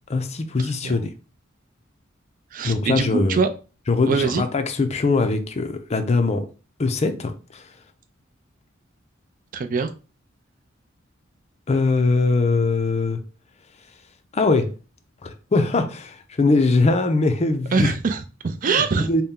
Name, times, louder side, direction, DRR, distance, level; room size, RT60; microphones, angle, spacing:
voice 1, 0.1-1.1 2.6-3.4 3.9-6.5 6.8-7.7 11.7-13.2 14.3-14.7 15.2-17.9 18.6-19.2, left 3 dB, 35° left, 0.5 m, -21 dB
voice 2, 2.5-3.5 4.0-4.4 9.5-9.9 17.7-19.1, right 4 dB, 45° right, 0.4 m, -23 dB
4.1 x 2.2 x 3.7 m
head